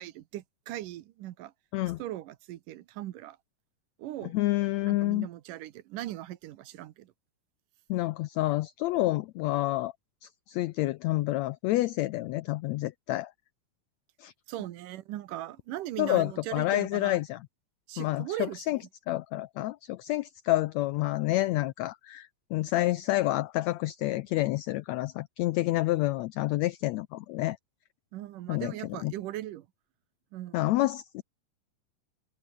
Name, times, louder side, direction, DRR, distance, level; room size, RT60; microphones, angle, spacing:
voice 1, 0.0-1.5 2.0-3.4 4.0-4.3 4.9-7.1 14.5-17.2 17.9-18.6 28.1-29.7 30.3-30.6, right 14 dB, 80° right, 2.6 m, -39 dB
voice 2, 4.3-5.3 7.9-9.9 10.2-13.3 14.2-14.3 16.0-17.5 18.0-18.8 19.1-27.6 28.5-29.1 30.5-31.2, left 17 dB, 85° left, 1.5 m, -29 dB
omnidirectional pair, 3.8 m